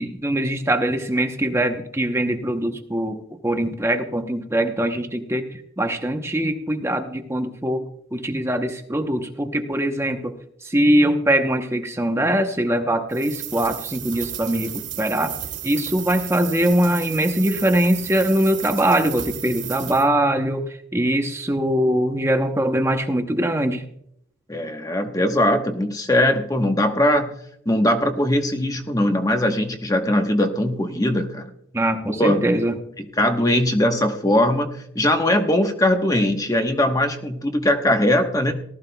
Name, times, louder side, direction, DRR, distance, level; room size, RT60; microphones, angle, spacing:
voice 1, 0.0-7.8 8.1-10.4 10.6-15.3 15.6-20.6 20.9-23.8 31.7-32.8, right 1 dB, 15° right, 6 dB, 0.8 m, -22 dB
sound 1, 13.1-20.1, right 11 dB, 65° right, 2.2 m, -33 dB
voice 2, 24.5-27.4 27.7-31.5 32.1-32.4 33.2-38.5, left 1 dB, 15° left, 5 dB, 1.1 m, -20 dB
18.5 x 13.5 x 2.3 m, 0.73 s
head